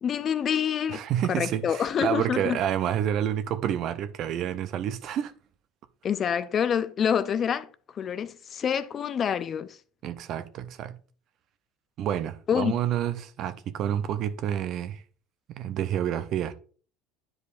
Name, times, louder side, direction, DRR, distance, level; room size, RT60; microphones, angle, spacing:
voice 1, 0.0-1.0 1.3-2.6 6.0-7.7 8.0-9.8 12.5-12.7, left 8 dB, 40° left, 0.6 m, -26 dB
voice 2, 0.9-5.3 10.0-11.0 12.0-15.0 15.5-16.5, right 10 dB, 55° right, 0.7 m, -29 dB
10.0 x 4.8 x 2.5 m
hypercardioid pair, 75°, 0 cm